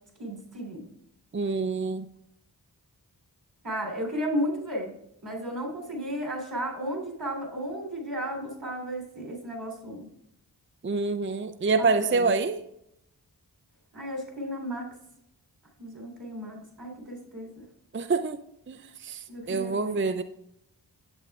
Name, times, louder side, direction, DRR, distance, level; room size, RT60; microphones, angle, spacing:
voice 1, 0.2-0.9 3.6-4.9 5.2-10.1 11.8-12.3 13.9-14.9 15.8-17.6 19.3-20.0, equal, 60° right, 0 dB, 3.6 m, -34 dB
voice 2, 1.3-2.1 10.8-12.6 17.9-18.4 18.7-20.2, right 4 dB, 30° right, 9 dB, 0.5 m, -26 dB
10.5 x 8.8 x 2.4 m, 0.78 s
wide cardioid pair, 45°, 41 cm